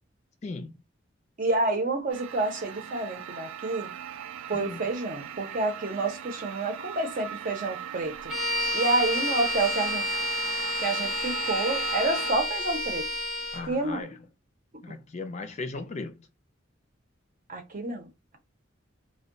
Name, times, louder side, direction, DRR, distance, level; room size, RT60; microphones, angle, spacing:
voice 1, 0.4-0.7 4.5-4.8 13.5-14.2 14.8-16.2, left 3 dB, 35° left, 0.4 m, -37 dB
voice 2, 1.4-3.9 4.5-8.3 8.7-10.2 10.8-13.2 13.7-14.1 17.5-18.4, right 2 dB, 45° right, 0.7 m, -29 dB
sound 1, 2.1-12.3, right 9 dB, 90° right, 0.4 m, -39 dB
Bowed string instrument, 8.3-13.7, left 1 dB, 5° right, 0.9 m, -30 dB
2.2 x 2.1 x 3.7 m
head